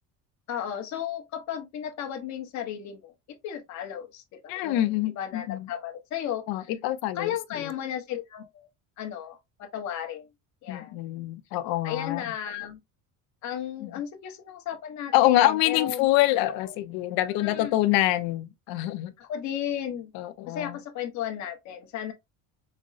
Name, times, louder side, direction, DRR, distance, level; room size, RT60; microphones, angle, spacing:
voice 1, 0.5-4.9 5.2-6.4 7.2-8.7 9.0-10.3 10.6-10.9 11.8-12.8 13.4-16.1 17.3-17.8 19.2-20.1 20.5-22.1, left 10 dB, 55° left, 0.9 m, -34 dB
voice 2, 4.5-5.7 6.5-7.7 10.7-12.3 13.8-13.9 15.1-19.1 20.1-20.8, left 15 dB, 90° left, 0.6 m, -25 dB
5.1 x 2.0 x 2.5 m
cardioid pair, 170°, 35 cm